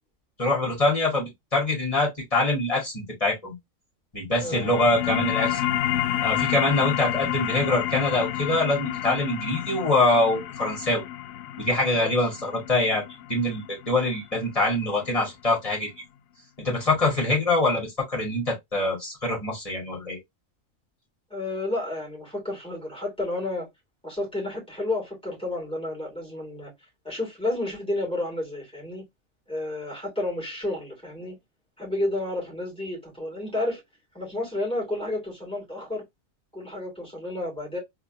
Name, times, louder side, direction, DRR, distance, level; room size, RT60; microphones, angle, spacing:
voice 1, 0.4-3.5 4.1-5.7 6.2-11.0 11.6-13.0 13.3-15.9 16.6-20.2, left 2 dB, 25° left, 2.1 m, -24 dB
voice 2, 4.3-4.7 11.9-12.1 21.3-23.7 24.0-26.7 27.0-29.0 29.5-31.4 31.8-33.8 34.1-36.0 36.5-37.8, left 2 dB, 5° left, 2.7 m, -31 dB
sound 1, 4.4-15.5, left 12 dB, 85° left, 1.0 m, -30 dB
4.1 x 3.0 x 2.7 m
omnidirectional pair, 1.4 m